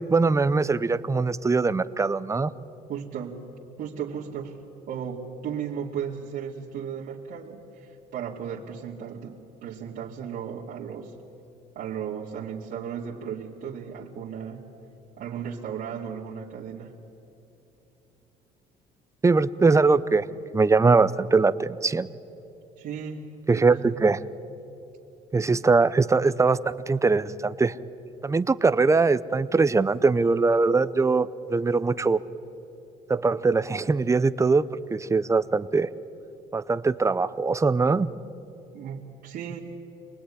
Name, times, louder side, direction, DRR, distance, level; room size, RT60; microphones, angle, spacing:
voice 1, 0.0-2.5 19.2-20.2 20.5-22.1 23.5-24.2 25.3-27.8 28.2-32.2 33.1-35.9 36.5-38.1, right 4 dB, 15° right, 15 dB, 0.7 m, -22 dB
voice 2, 2.9-3.4 3.8-4.6 4.9-11.1 11.7-14.6 15.2-16.9 22.8-23.3 23.5-24.0 38.7-39.6, right 7 dB, 70° right, -5 dB, 2.5 m, -35 dB
26.5 x 20.0 x 9.9 m, 3.0 s
cardioid pair, 110°, 17 cm